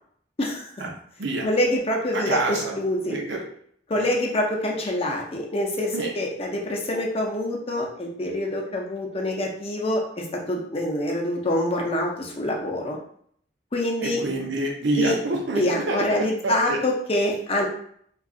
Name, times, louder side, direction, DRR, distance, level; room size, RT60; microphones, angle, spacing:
voice 1, 0.4-0.7 1.4-3.2 3.9-13.0 13.7-14.2 15.0-15.2 15.5-17.6, left 1 dB, 35° left, -1 dB, 0.6 m, -26 dB
voice 2, 2.1-2.8 3.0-3.5 3.9-4.1 5.9-6.1 14.0-16.8, right 2 dB, 80° right, 0 dB, 0.7 m, -27 dB
2.4 x 2.3 x 3.6 m, 0.63 s
head